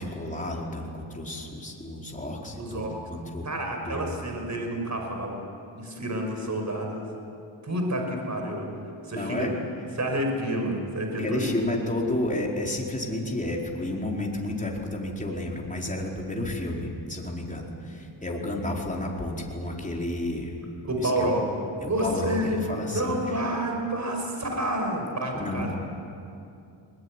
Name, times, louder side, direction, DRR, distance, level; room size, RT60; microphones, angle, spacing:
voice 1, 0.0-3.5 3.8-4.1 9.1-9.5 11.2-20.6 21.0-21.3 21.8-23.2 25.3-25.7, left 1 dB, 15° left, -2 dB, 4.7 m, -31 dB
voice 2, 2.6-3.0 3.4-5.5 5.7-7.1 7.6-8.7 9.0-9.5 10.0-11.6 20.9-22.6 22.9-25.7, right 1 dB, 35° right, 2 dB, 5.6 m, -29 dB
21.5 x 21.5 x 9.9 m, 2.6 s
cardioid pair, 80°, 48 cm